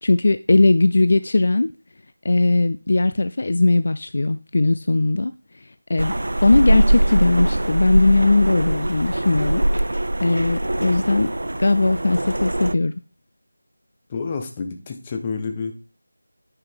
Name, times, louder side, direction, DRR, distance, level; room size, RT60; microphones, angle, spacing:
voice 1, 0.0-1.7 2.2-5.3 5.9-6.1 6.4-9.6 10.2-11.3 11.6-12.9, left 2 dB, 45° left, 12 dB, 0.3 m, -19 dB
sound 1, 6.0-12.7, right 1 dB, 90° right, 0.3 m, -22 dB
voice 2, 14.1-15.7, left 4 dB, 15° left, 5 dB, 0.7 m, -29 dB
9.5 x 4.8 x 3.6 m, 0.32 s
figure-of-eight pair, 175°, 0 cm